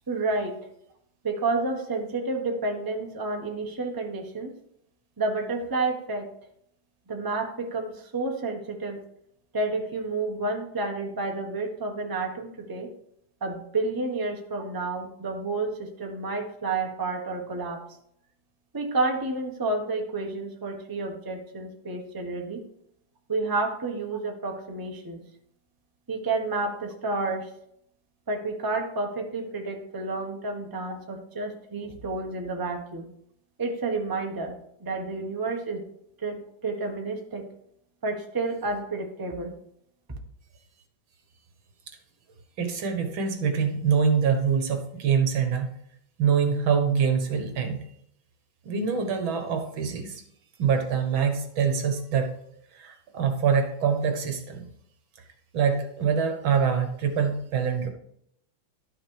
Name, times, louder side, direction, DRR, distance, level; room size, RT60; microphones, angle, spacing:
voice 1, 0.1-0.6 1.2-4.5 5.2-6.3 7.1-9.0 9.5-12.9 13.4-17.8 18.7-22.6 23.3-25.2 26.1-27.5 28.3-33.1 33.6-35.8 36.2-37.4 38.0-39.6, right 3 dB, 15° right, 2 dB, 1.0 m, -30 dB
voice 2, 42.6-45.7 46.2-47.8 48.6-50.2 50.6-52.3 52.7-54.6 55.5-57.9, right 6 dB, 75° right, 6 dB, 2.1 m, -25 dB
12.0 x 6.3 x 4.8 m, 0.73 s
omnidirectional pair, 2.2 m